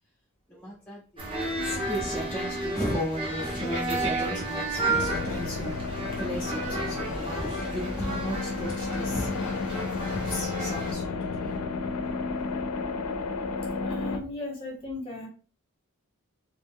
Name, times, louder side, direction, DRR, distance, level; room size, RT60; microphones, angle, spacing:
voice 1, 0.5-5.8 6.2-9.3 10.0-12.1, equal, 5° left, -5 dB, 0.5 m, -35 dB
sound 1, 1.2-10.9, right 2 dB, 25° right, 0.8 m, -32 dB
sound 2, 4.9-14.2, left 4 dB, 80° left, 0.4 m, -32 dB
voice 2, 13.8-15.3, left 2 dB, 25° left, -1 dB, 0.9 m, -36 dB
2.6 x 2.1 x 3.4 m, 0.37 s
head